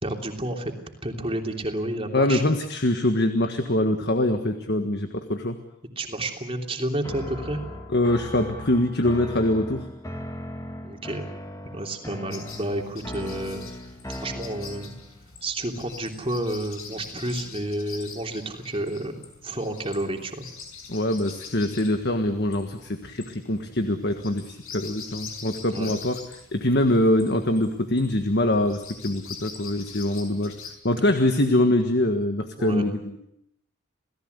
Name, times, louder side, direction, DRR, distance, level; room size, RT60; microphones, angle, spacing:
voice 1, 0.0-0.7 1.0-2.4 6.0-7.6 10.8-11.3 11.7-13.6 14.1-14.9 15.4-19.2 19.4-20.5 25.7-25.9 32.6-32.9, right 1 dB, 25° right, 3 dB, 3.1 m, -30 dB
voice 2, 2.1-5.6 7.9-9.9 20.9-26.2 26.5-30.5 30.8-33.2, left 1 dB, 50° left, 7 dB, 1.6 m, -24 dB
sound 1, 7.0-15.1, left 1 dB, 15° left, 2.3 m, -38 dB
sound 2, 12.3-30.8, left 5 dB, 70° left, 5.5 m, -44 dB
28.5 x 17.5 x 8.1 m, 0.79 s
head